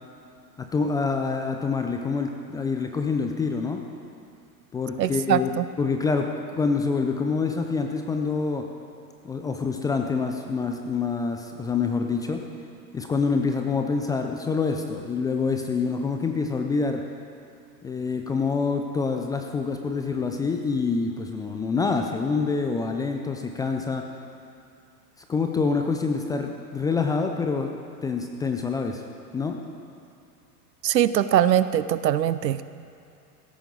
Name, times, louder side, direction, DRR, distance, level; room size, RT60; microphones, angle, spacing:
voice 1, 0.6-3.8 4.7-5.5 5.8-8.7 9.2-12.4 12.9-17.1 17.8-24.1 25.3-27.7 28.0-29.0 29.3-29.6, left 4 dB, 10° left, 4 dB, 0.3 m, -26 dB
voice 2, 5.0-5.6 30.8-32.6, right 11 dB, 85° right, 15 dB, 0.7 m, -22 dB
16.0 x 13.5 x 3.9 m, 2.5 s
hypercardioid pair, 95°, 49 cm